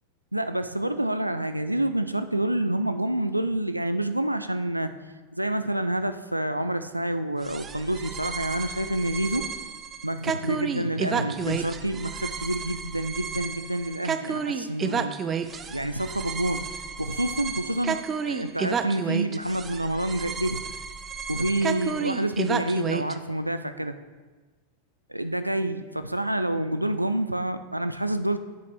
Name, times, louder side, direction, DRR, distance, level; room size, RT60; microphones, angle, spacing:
voice 1, 0.3-4.9 5.3-9.5 10.0-15.2 15.7-16.7 17.0-18.0 18.2-20.6 21.3-24.0 25.1-28.4, right 1 dB, 85° right, 10 dB, 0.4 m, -28 dB
sound 1, 7.4-23.1, right 6 dB, 20° right, 0.6 m, -31 dB
10.5 x 8.3 x 3.4 m, 1.3 s
figure-of-eight pair, 90°, 0 cm